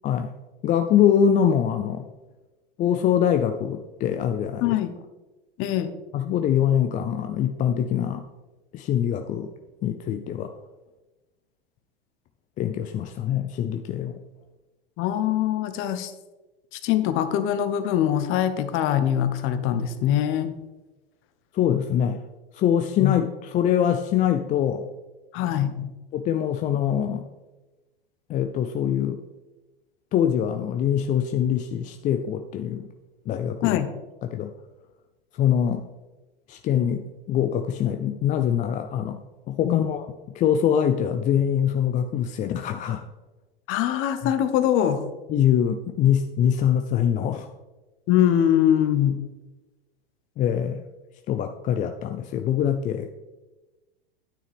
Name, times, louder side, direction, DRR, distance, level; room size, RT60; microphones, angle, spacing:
voice 1, 0.6-2.1 2.8-4.8 6.1-8.3 8.7-9.5 9.8-10.5 12.6-14.2 21.5-22.2 22.5-24.9 26.1-27.2 28.3-29.2 30.1-32.9 33.3-33.8 34.2-34.5 35.3-35.9 36.5-43.1 44.2-44.3 45.3-47.5 50.4-50.8 51.3-53.1, left 9 dB, 25° left, 6 dB, 0.5 m, -24 dB
voice 2, 4.6-4.9 5.6-5.9 15.0-16.1 16.7-20.6 23.0-23.1 25.3-25.9 33.6-33.9 39.6-39.9 43.7-45.1 48.1-49.3, left 10 dB, 40° left, 11 dB, 1.0 m, -23 dB
9.8 x 8.8 x 3.5 m, 1.1 s
hypercardioid pair, 110°, 30 cm